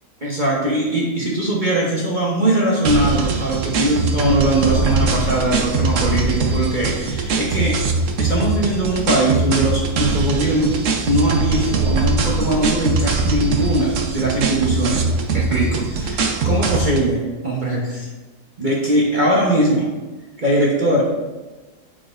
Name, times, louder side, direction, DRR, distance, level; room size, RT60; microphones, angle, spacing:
voice 1, 0.2-7.8 8.2-10.8 11.0-15.1 15.3-18.1 18.6-19.9 20.4-21.0, right 1 dB, 30° right, -5 dB, 1.1 m, -20 dB
sound 1, 2.8-17.1, right 3 dB, 60° right, 1.0 m, -21 dB
9.3 x 5.0 x 2.6 m, 1.2 s
omnidirectional pair, 1.7 m